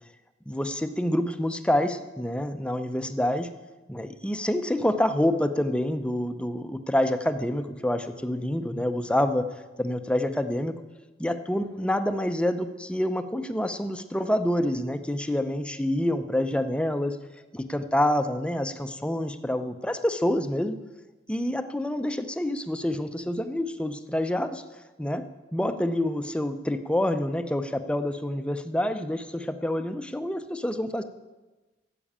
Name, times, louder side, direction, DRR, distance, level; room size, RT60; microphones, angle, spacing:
voice 1, 0.5-3.5 3.9-9.5 9.8-10.8 11.2-17.2 17.5-20.8 21.3-24.6 25.0-25.2 25.5-31.0, left 1 dB, 5° left, 9 dB, 0.6 m, -27 dB
12.0 x 7.7 x 8.7 m, 1.2 s
head